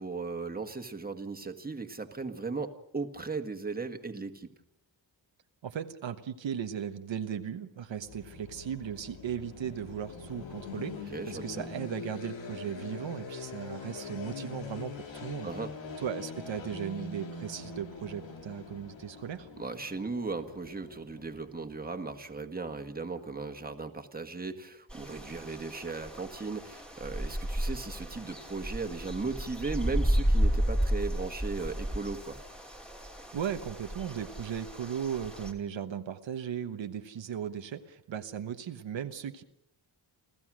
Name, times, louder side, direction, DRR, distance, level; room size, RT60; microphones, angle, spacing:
voice 1, 0.0-4.5 11.1-11.7 15.4-15.7 19.6-32.4, right 4 dB, 20° right, 6 dB, 1.8 m, -37 dB
voice 2, 5.6-15.5 16.0-19.5 33.3-39.4, right 8 dB, 80° right, 8 dB, 1.2 m, -37 dB
sound 1, 7.9-21.8, left 4 dB, 85° left, 2.6 m, -43 dB
sound 2, 24.9-35.5, equal, ahead, 2.7 m, -33 dB
29.0 x 14.5 x 6.3 m, 0.79 s
wide cardioid pair, 105°, 45 cm